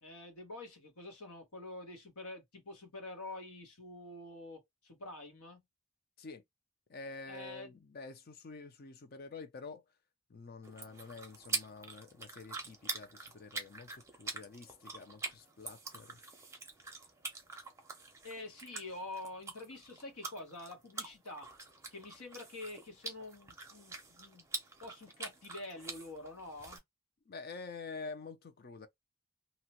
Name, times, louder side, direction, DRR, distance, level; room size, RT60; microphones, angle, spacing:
voice 1, 0.0-5.6 7.3-7.7 18.2-21.5 21.9-24.4 24.8-26.8, left 2 dB, 90° left, 1.2 m, -47 dB
voice 2, 6.9-9.8 10.3-16.2 27.3-28.9, left 4 dB, 45° left, 0.5 m, -48 dB
sound 1, 10.6-26.8, right 4 dB, 15° right, 0.6 m, -45 dB
2.8 x 2.1 x 2.9 m
head